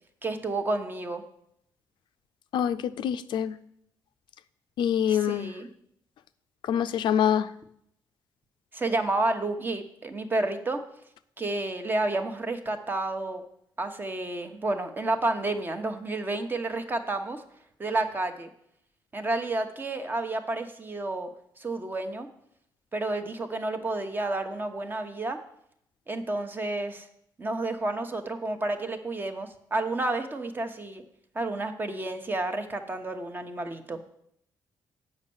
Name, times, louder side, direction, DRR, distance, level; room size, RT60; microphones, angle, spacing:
voice 1, 0.2-1.2 5.1-5.7 8.7-10.8 11.4-13.4 13.8-17.4 17.8-18.5 19.1-21.3 21.6-22.3 22.9-25.4 26.1-27.1 27.4-31.0 31.3-34.0, right 2 dB, 25° right, 7 dB, 0.9 m, -30 dB
voice 2, 2.5-3.6 4.8-5.5 6.6-7.5, left 9 dB, 85° left, 12 dB, 0.4 m, -25 dB
8.0 x 5.4 x 7.0 m, 0.71 s
cardioid pair, 115°, 8 cm